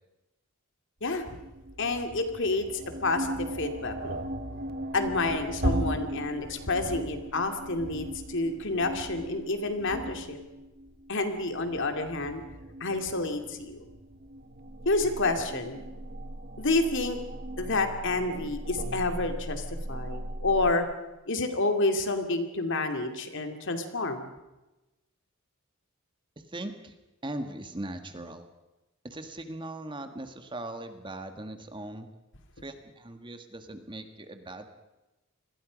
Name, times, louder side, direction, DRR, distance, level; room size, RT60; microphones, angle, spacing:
voice 1, 1.0-1.4 1.8-2.7 3.0-4.2 4.9-10.4 11.1-12.4 12.8-13.8 14.9-15.9 16.6-17.2 17.6-20.9 21.3-24.3, left 2 dB, 60° left, 6 dB, 2.5 m, -29 dB
sound 1, 1.0-20.7, right 1 dB, 45° right, 1.5 m, -37 dB
voice 2, 26.3-26.9 27.2-28.5 29.0-32.1 32.6-34.7, right 1 dB, 25° right, 7 dB, 1.6 m, -39 dB
28.0 x 21.0 x 5.2 m, 1.0 s
head